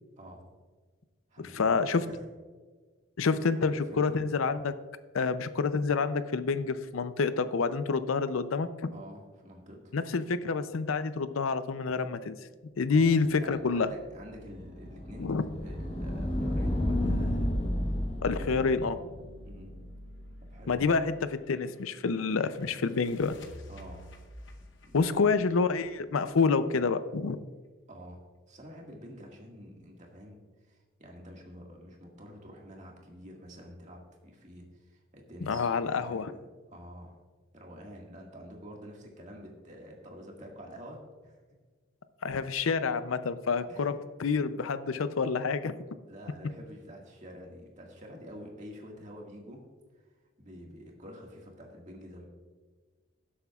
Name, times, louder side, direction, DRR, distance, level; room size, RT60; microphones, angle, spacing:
voice 1, 0.2-0.5 1.3-2.3 3.3-4.2 8.9-9.9 12.9-15.4 15.6-17.5 18.3-18.7 19.4-19.8 20.5-21.0 23.7-24.1 24.8-25.5 27.9-37.2 37.5-41.4 43.7-44.1 46.1-49.6 50.4-52.2, equal, 35° right, 0 dB, 1.9 m, -48 dB
voice 2, 1.5-2.0 3.2-4.7 5.1-8.7 9.9-12.4 12.8-13.9 15.2-15.4 18.2-19.0 20.7-23.3 24.9-27.4 35.4-36.3 42.2-43.9 44.2-45.7, left 4 dB, 85° left, 12 dB, 0.5 m, -28 dB
sound 1, 14.1-20.9, left 1 dB, 25° left, 1.0 m, -33 dB
sound 2, 21.1-26.6, left 1 dB, 60° left, 0.9 m, -51 dB
17.0 x 7.9 x 2.4 m, 1.4 s
head